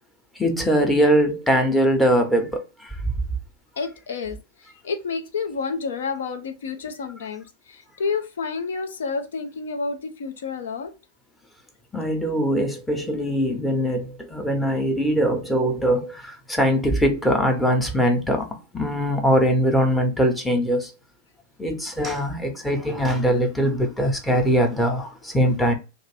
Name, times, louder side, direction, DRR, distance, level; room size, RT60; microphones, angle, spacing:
voice 1, 0.4-3.1 11.9-18.5 18.7-20.9 21.6-25.7, equal, 10° left, 0.8 m, -22 dB
voice 2, 3.8-10.9, left 5 dB, 65° left, 0.6 m, -30 dB
2.4 x 2.4 x 3.3 m
figure-of-eight pair, 90°, 0 cm